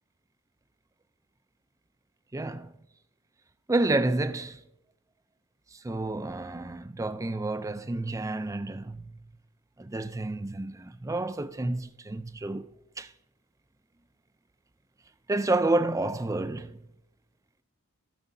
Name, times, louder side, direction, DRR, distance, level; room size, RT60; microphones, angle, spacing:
voice 1, 2.3-2.7 3.7-4.6 5.7-9.2 9.8-12.7 13.0-13.1 15.3-16.8, right 2 dB, 15° right, 0.3 m, -29 dB
16.5 x 6.3 x 2.7 m
head